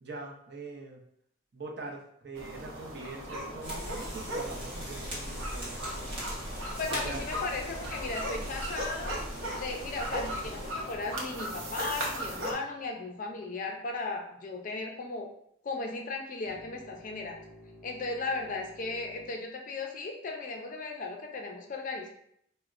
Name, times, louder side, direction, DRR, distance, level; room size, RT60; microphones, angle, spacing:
voice 1, 0.0-1.0 1.5-6.4 6.9-7.4, right 3 dB, 55° right, -1 dB, 0.6 m, -43 dB
sound 1, 2.4-12.5, equal, 85° right, 0.8 m, -38 dB
sound 2, 3.6-10.7, equal, 25° right, 1.0 m, -40 dB
voice 2, 6.8-9.1 9.5-15.3 15.6-17.4 17.8-22.1, left 3 dB, 40° left, 2 dB, 0.4 m, -36 dB
sound 3, 10.1-13.5 16.5-19.3, left 1 dB, 25° left, 0.7 m, -53 dB
4.1 x 2.1 x 2.4 m, 0.71 s
head